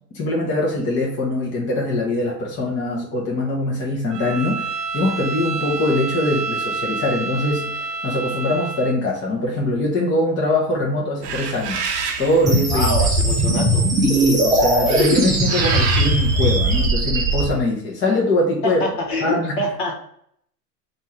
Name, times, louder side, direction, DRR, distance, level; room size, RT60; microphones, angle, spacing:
voice 1, 0.1-11.9 12.2-12.9 14.0-18.8 19.2-19.7, left 1 dB, 25° left, -3 dB, 0.9 m, -22 dB
Bowed string instrument, 4.1-9.0, right 4 dB, 80° right, 0.7 m, -28 dB
sound 1, 11.2-16.9, right 5 dB, 45° right, 0.7 m, -29 dB
sound 2, 12.5-17.4, right 1 dB, 10° right, 0.4 m, -19 dB
voice 2, 12.7-13.9 18.6-19.9, left 1 dB, 55° left, 2 dB, 1.3 m, -25 dB
3.5 x 2.7 x 4.3 m, 0.68 s
supercardioid pair, 130°, 47 cm